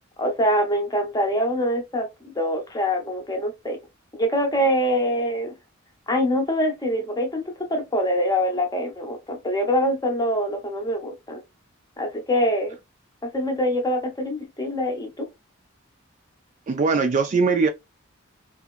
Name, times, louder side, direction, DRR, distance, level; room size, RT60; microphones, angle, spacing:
voice 1, 0.2-3.8 4.1-5.5 6.1-11.4 12.0-12.8 13.2-15.3, equal, 20° left, 0.7 m, -24 dB
voice 2, 16.7-17.7, right 4 dB, 35° right, 0.3 m, -20 dB
2.8 x 2.4 x 2.4 m
head